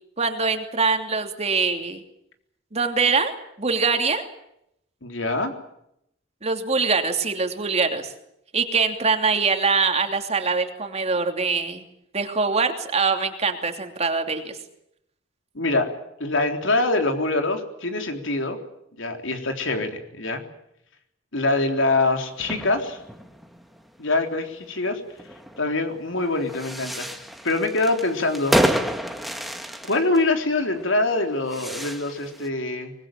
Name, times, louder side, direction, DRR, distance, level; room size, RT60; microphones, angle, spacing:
voice 1, 0.2-2.0 2.7-3.3 3.6-4.2 6.4-8.1 8.5-11.8 12.1-14.6, right 4 dB, 35° right, 5 dB, 2.9 m, -23 dB
voice 2, 5.0-5.5 15.5-15.9 16.2-18.6 19.0-20.4 21.3-23.0 24.0-25.0 25.6-28.6 29.9-32.9, left 2 dB, 85° left, 5 dB, 3.7 m, -24 dB
sound 1, 22.3-32.5, equal, ahead, 1.8 m, -30 dB
24.5 x 20.5 x 8.9 m, 0.78 s
head